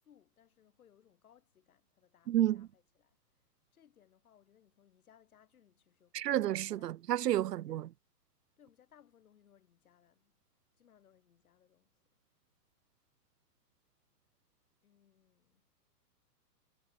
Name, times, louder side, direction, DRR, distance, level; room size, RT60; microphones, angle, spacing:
voice 1, 0.0-3.4 3.7-7.0 7.4-7.8 8.6-10.4 10.8-12.2 14.8-15.7, left 9 dB, 60° left, 6.5 m, -67 dB
voice 2, 2.3-2.7 6.1-7.9, right 13 dB, 75° right, 0.7 m, -31 dB
hypercardioid pair, 170°, 48 cm